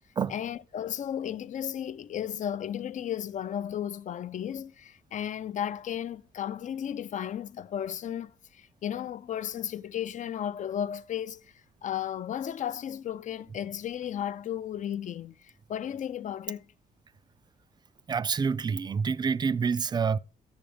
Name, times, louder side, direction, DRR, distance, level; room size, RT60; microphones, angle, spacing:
voice 1, 0.3-11.4 11.8-16.6, left 10 dB, 45° left, 0.4 m, -34 dB
voice 2, 18.1-20.2, right 5 dB, 25° right, 0.3 m, -27 dB
8.8 x 7.0 x 5.0 m
cardioid pair, 130°, 17 cm